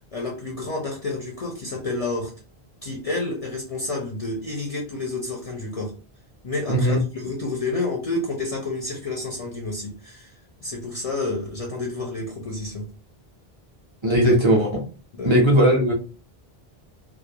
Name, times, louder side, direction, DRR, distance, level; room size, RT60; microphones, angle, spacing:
voice 1, 0.0-2.3 2.8-5.9 6.4-10.3 10.6-12.9 15.1-15.3, left 2 dB, 45° left, -1 dB, 0.5 m, -29 dB
voice 2, 6.7-7.0 14.0-14.8 15.2-15.9, equal, 35° right, -3 dB, 0.6 m, -18 dB
2.4 x 2.0 x 2.7 m, 0.34 s
omnidirectional pair, 1.1 m